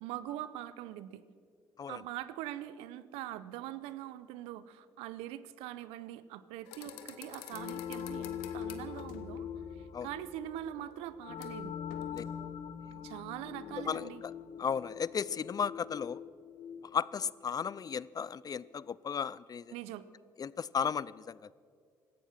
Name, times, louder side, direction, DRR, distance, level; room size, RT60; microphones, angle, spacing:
voice 1, 0.0-1.2 1.9-9.5 9.7-11.7 13.0-14.2 19.7-20.1, right 13 dB, 80° right, 16 dB, 0.6 m, -43 dB
sound 1, 6.7-9.4 11.4-11.6 11.9-12.3, left 10 dB, 85° left, 1.1 m, -49 dB
sound 2, 7.5-18.0, left 8 dB, 65° left, 1.0 m, -43 dB
voice 2, 13.8-14.3 14.6-16.2 16.9-19.7 20.4-21.4, left 7 dB, 40° left, 21 dB, 0.4 m, -35 dB
17.0 x 13.5 x 6.1 m, 2.2 s
hypercardioid pair, 55°, 10 cm